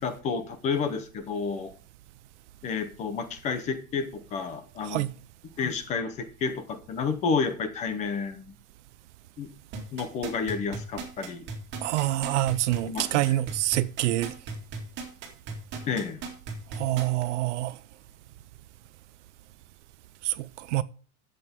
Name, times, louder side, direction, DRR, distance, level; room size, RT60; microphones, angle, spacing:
voice 1, 0.0-1.7 2.6-5.0 5.6-8.5 9.4-9.5 9.9-11.4 12.9-13.4 15.9-16.2, left 5 dB, 15° left, 0.7 m, -30 dB
sound 1, 9.7-17.2 17.7-17.8, right 5 dB, 25° right, 2.2 m, -36 dB
voice 2, 11.8-14.3 16.7-17.8 20.2-20.8, right 15 dB, 50° right, 0.6 m, -26 dB
12.0 x 8.1 x 3.6 m
supercardioid pair, 180°, 45 cm